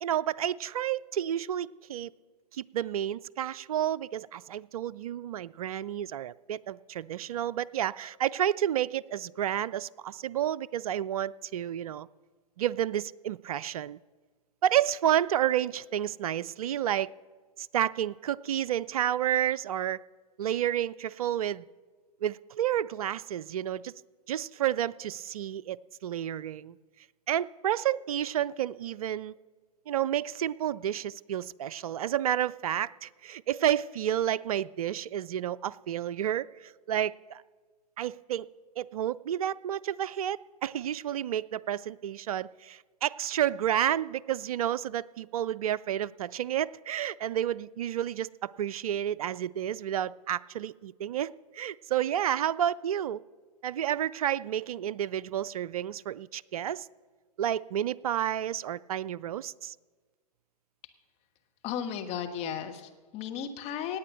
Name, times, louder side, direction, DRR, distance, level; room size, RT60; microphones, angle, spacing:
voice 1, 0.0-2.1 2.5-12.1 12.6-14.0 14.6-17.1 17.6-20.0 20.4-21.6 22.2-23.9 24.3-26.8 27.3-29.3 29.9-37.4 38.0-38.5 38.8-53.2 53.6-56.9 57.4-59.7, right 11 dB, 60° right, 18 dB, 0.4 m, -30 dB
voice 2, 61.6-64.0, left 8 dB, 30° left, 5 dB, 1.4 m, -35 dB
18.0 x 8.5 x 6.3 m, 1.4 s
figure-of-eight pair, 110°, 21 cm